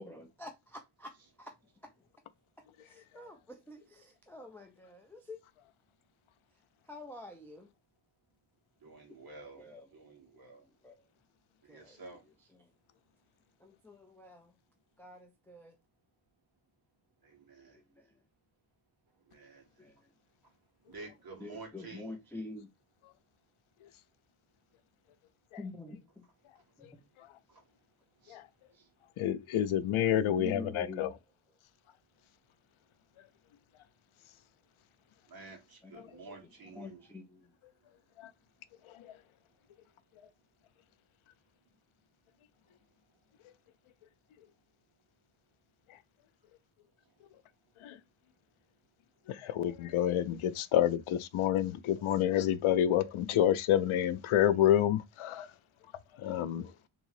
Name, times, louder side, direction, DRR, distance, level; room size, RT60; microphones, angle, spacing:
voice 1, 0.0-1.5 1.8-1.9 2.8-5.4 6.9-7.7 9.2-9.9 10.3-11.0 11.7-12.0 12.2-12.7 13.6-14.5 15.0-15.8 17.7-18.2 19.8-20.0 21.3-22.7 25.6-26.2 26.8-27.0 28.7-28.9 29.7-31.2 35.8-37.5, left 2 dB, 5° left, 0.3 m, -48 dB
voice 2, 8.8-9.6 9.9-10.7 11.6-12.2 17.2-17.8 19.3-19.7 20.9-22.2 27.5-27.6 28.2-28.4 35.3-37.0, right 3 dB, 45° right, 1.6 m, -50 dB
voice 3, 29.2-31.1 36.0-36.1 38.2-38.3 38.9-39.1 45.9-46.0 47.8-48.0 49.3-55.5 56.2-56.7, left 11 dB, 85° left, 0.6 m, -29 dB
3.6 x 3.1 x 3.1 m
wide cardioid pair, 165°, 48 cm